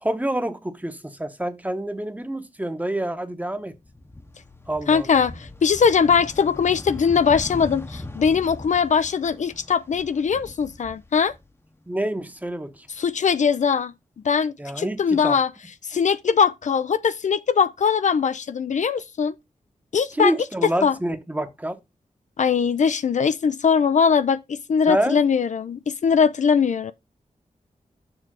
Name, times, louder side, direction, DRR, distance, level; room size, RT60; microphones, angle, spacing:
voice 1, 0.0-3.8 4.7-5.1 11.9-12.9 14.6-15.4 20.1-21.8 24.9-25.2, right 1 dB, 10° right, 1.0 m, -27 dB
sound 1, 3.7-11.9 12.2-13.4, left 2 dB, 20° left, 0.8 m, -40 dB
voice 2, 4.9-11.3 13.0-13.9 14.2-15.5 15.9-19.3 19.9-20.3 20.8-21.0 22.4-26.9, left 6 dB, 65° left, 0.5 m, -21 dB
6.8 x 3.4 x 6.1 m
wide cardioid pair, 90°, 14 cm